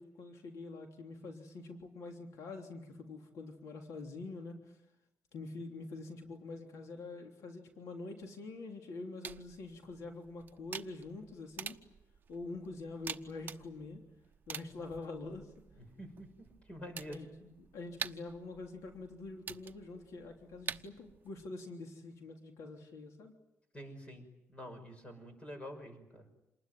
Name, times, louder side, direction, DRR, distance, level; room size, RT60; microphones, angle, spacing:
voice 1, 0.0-4.6 5.3-11.8 12.3-14.0 14.5-15.5 17.1-23.3, left 3 dB, 90° left, 3 dB, 3.4 m, -45 dB
sound 1, 9.2-21.3, right 6 dB, 40° right, 1.0 m, -48 dB
voice 2, 15.8-16.3 16.7-17.2 23.7-24.2 24.5-26.3, equal, 25° left, 7 dB, 6.0 m, -47 dB
27.5 x 20.5 x 9.3 m, 0.91 s
cardioid pair, 155°, 5 cm